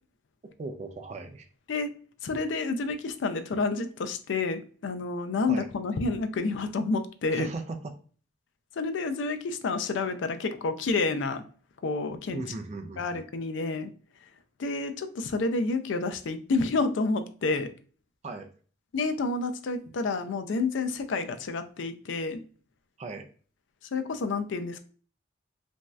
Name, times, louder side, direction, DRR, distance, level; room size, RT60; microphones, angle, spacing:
voice 1, 0.6-1.5 5.5-5.7 7.3-7.9 12.3-13.3 18.2-18.5 19.8-20.0 23.0-23.3, right 3 dB, 35° right, 0.3 m, -37 dB
voice 2, 2.2-7.5 8.8-11.4 11.8-12.4 13.0-13.9 14.6-17.7 18.9-22.4 23.9-24.8, left 3 dB, 85° left, 0.4 m, -29 dB
3.1 x 2.6 x 2.2 m
head